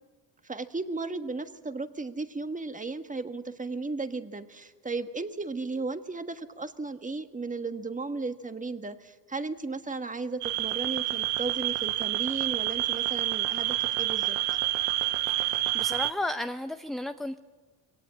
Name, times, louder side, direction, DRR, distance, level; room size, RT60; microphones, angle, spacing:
voice 1, 0.4-14.4, right 3 dB, 15° right, 9 dB, 1.4 m, -35 dB
sound 1, 10.4-16.1, right 15 dB, 90° right, 0.9 m, -28 dB
voice 2, 15.4-17.4, left 1 dB, ahead, 8 dB, 0.6 m, -33 dB
22.5 x 17.5 x 8.7 m, 1.3 s
cardioid pair, 95°, 46 cm